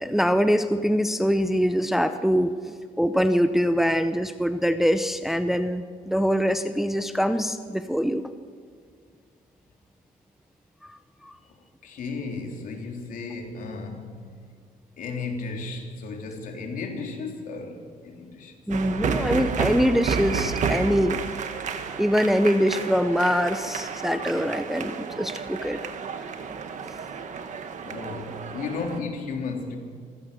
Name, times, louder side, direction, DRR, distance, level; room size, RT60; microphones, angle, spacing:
voice 1, 0.0-8.2 11.2-11.3 18.7-21.2 22.0-25.8, equal, ahead, 9 dB, 0.6 m, -23 dB
voice 2, 11.8-14.3 15.0-18.5 27.8-29.8, left 4 dB, 65° left, 3 dB, 3.3 m, -34 dB
sound 1, 18.7-29.0, right 6 dB, 55° right, 1.7 m, -31 dB
25.5 x 16.0 x 6.8 m, 2.1 s
cardioid pair, 145°, 15 cm